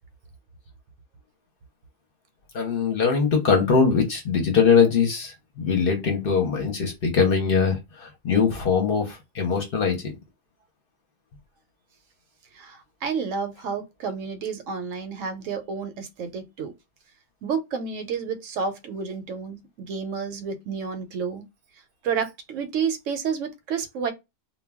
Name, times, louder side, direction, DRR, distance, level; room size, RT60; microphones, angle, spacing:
voice 1, 2.5-10.1, left 6 dB, 55° left, 0.8 m, -22 dB
voice 2, 12.5-16.7 17.4-21.4 22.0-24.1, right 6 dB, 75° right, 0.9 m, -30 dB
2.2 x 2.2 x 3.3 m
omnidirectional pair, 1.4 m